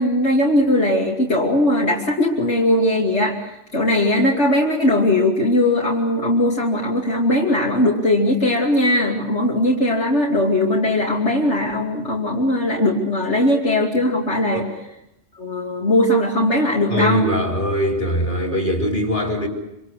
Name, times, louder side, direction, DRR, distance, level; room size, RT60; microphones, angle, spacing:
voice 1, 0.0-3.4 3.7-14.7 15.4-17.3, left 1 dB, 70° left, -3 dB, 3.1 m, -19 dB
voice 2, 16.9-19.5, equal, 45° left, 1 dB, 4.6 m, -22 dB
26.0 x 26.0 x 6.5 m, 0.86 s
omnidirectional pair, 1.2 m